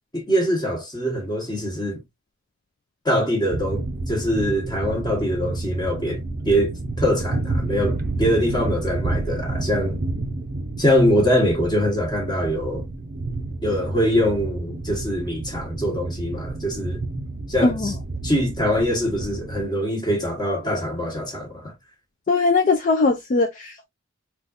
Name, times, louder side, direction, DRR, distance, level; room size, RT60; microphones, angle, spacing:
voice 1, 0.1-2.0 3.0-6.7 7.0-10.0 10.8-12.8 13.6-17.0 17.5-17.9 18.2-21.7, equal, 20° left, 1.1 m, -23 dB
sound 1, 3.5-19.7, right 2 dB, 45° right, 0.5 m, -30 dB
voice 2, 17.6-17.9 22.3-23.8, left 3 dB, 40° left, 0.4 m, -20 dB
3.8 x 2.4 x 2.5 m
head